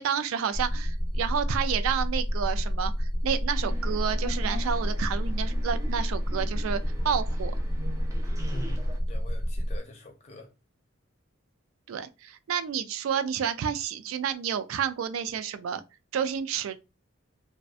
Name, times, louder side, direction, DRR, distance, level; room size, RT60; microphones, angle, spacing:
voice 1, 0.0-7.5 11.9-15.8 16.1-16.8, right 8 dB, 85° right, 0.3 m, -30 dB
sound 1, 0.5-9.8, equal, 45° right, 0.7 m, -29 dB
sound 2, 3.6-9.0, equal, 15° right, 0.4 m, -44 dB
voice 2, 8.4-10.5, left 1 dB, 35° left, 0.6 m, -44 dB
2.5 x 2.1 x 2.4 m
head